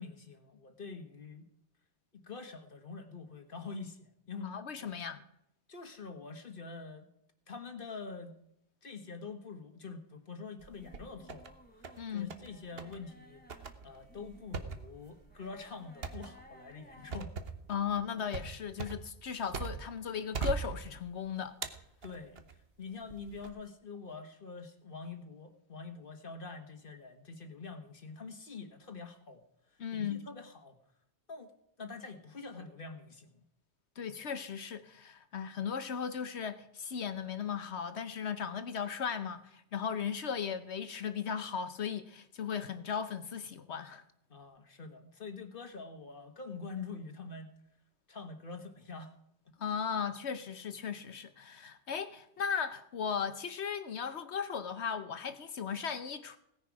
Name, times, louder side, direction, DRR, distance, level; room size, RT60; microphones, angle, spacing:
voice 1, 0.0-1.5 2.1-4.5 5.7-7.1 7.5-8.4 8.8-13.4 13.8-17.3 17.7-17.8 22.0-22.4 22.8-29.4 29.9-30.8 31.3-31.5 31.8-33.4 44.3-47.5 48.1-49.2 49.4-49.5, left 4 dB, 50° left, 1.6 m, -45 dB
voice 2, 4.4-5.2 12.0-12.3 17.7-21.6 29.8-30.2 34.0-44.0 49.6-56.4, left 7 dB, 65° left, 1.1 m, -37 dB
sound 1, 10.6-11.5 11.8-12.5 12.8-13.0 13.5-20.0 20.3-21.2 21.6-22.5 23.1-23.5, right 5 dB, 55° right, 1.3 m, -40 dB
sound 2, 10.7-17.2, left 1 dB, 10° left, 1.5 m, -59 dB
17.5 x 10.0 x 4.8 m
omnidirectional pair, 1.2 m